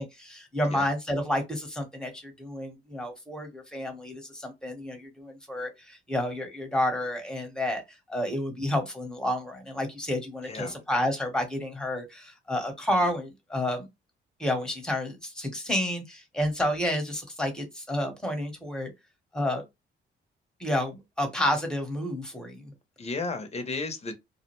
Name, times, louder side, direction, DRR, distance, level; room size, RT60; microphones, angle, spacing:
voice 1, 0.0-7.8 8.1-13.9 14.4-18.9 19.3-19.6 20.6-22.7, left 1 dB, 5° left, 1.0 m, -30 dB
voice 2, 10.4-10.7 23.0-24.1, left 3 dB, 30° left, 0.8 m, -33 dB
2.3 x 2.1 x 3.0 m
cardioid pair, 90°, 20 cm